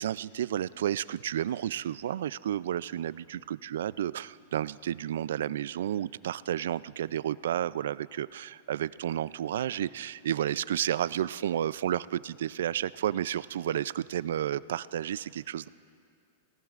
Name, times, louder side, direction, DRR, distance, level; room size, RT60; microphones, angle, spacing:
voice 1, 0.0-15.7, right 11 dB, 75° right, 19 dB, 0.3 m, -31 dB
29.5 x 18.5 x 2.5 m, 2.4 s
supercardioid pair, 150°, 0 cm